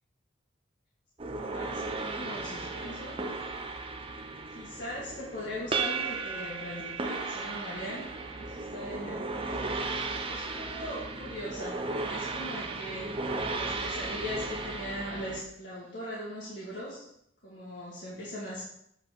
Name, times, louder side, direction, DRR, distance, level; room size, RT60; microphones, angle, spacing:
sound 1, 1.2-15.4, right 3 dB, 25° right, 0.6 m, -35 dB
voice 1, 1.4-3.2 4.5-9.6 10.3-17.1 17.4-18.6, equal, 55° left, -7 dB, 2.0 m, -40 dB
8.3 x 4.3 x 5.3 m, 0.72 s
head